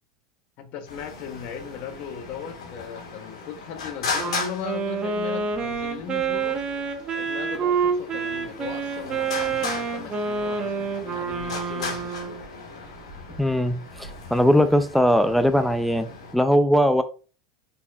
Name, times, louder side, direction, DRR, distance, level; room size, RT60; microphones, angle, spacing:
voice 1, 0.6-6.6 7.1-12.4, left 8 dB, 55° left, 0.9 m, -38 dB
Traffic noise roadway noise, 0.9-16.4, left 4 dB, 90° left, 1.5 m, -37 dB
Wind instrument woodwind instrument, 4.2-12.4, right 5 dB, 30° right, 0.9 m, -28 dB
voice 2, 13.4-17.0, equal, ahead, 0.4 m, -20 dB
4.2 x 4.0 x 2.3 m
hypercardioid pair, 110°, 3 cm